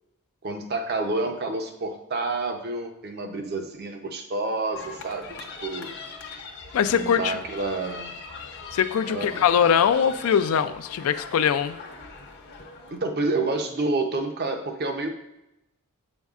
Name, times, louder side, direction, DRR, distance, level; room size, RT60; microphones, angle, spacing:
voice 1, 0.4-5.3 5.6-6.0 6.9-8.1 9.1-9.4 12.9-15.1, right 2 dB, 45° right, 5 dB, 0.6 m, -29 dB
sound 1, 4.7-13.0, left 4 dB, 50° left, 0.7 m, -41 dB
voice 2, 6.7-7.4 8.7-11.7, left 8 dB, 70° left, 12 dB, 0.3 m, -22 dB
8.0 x 5.3 x 2.4 m, 0.89 s
head